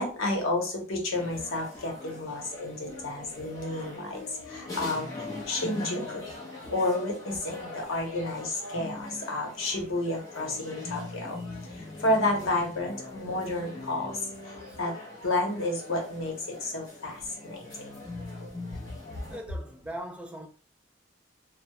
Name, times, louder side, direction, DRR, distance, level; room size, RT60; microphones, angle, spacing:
voice 1, 0.0-4.2 4.5-5.1 5.5-6.2 6.7-11.4 12.0-14.2 14.8-14.9 15.2-16.3 16.6-17.6, left 2 dB, 85° left, 0.8 m, -30 dB
sound 1, 1.1-19.4, left 2 dB, 20° left, 0.7 m, -42 dB
voice 2, 19.3-20.5, right 1 dB, 5° right, 0.3 m, -40 dB
2.2 x 2.0 x 2.9 m
head